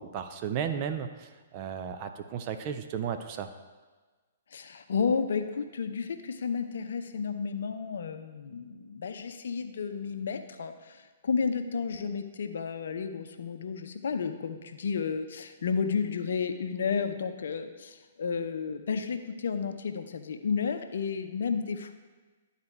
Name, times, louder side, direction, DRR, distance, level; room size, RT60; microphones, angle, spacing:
voice 1, 0.0-3.5, right 8 dB, 35° right, 7 dB, 0.6 m, -34 dB
voice 2, 4.5-21.9, left 5 dB, 60° left, 8 dB, 0.6 m, -32 dB
11.5 x 4.1 x 4.7 m, 1.3 s
figure-of-eight pair, 120°, 0 cm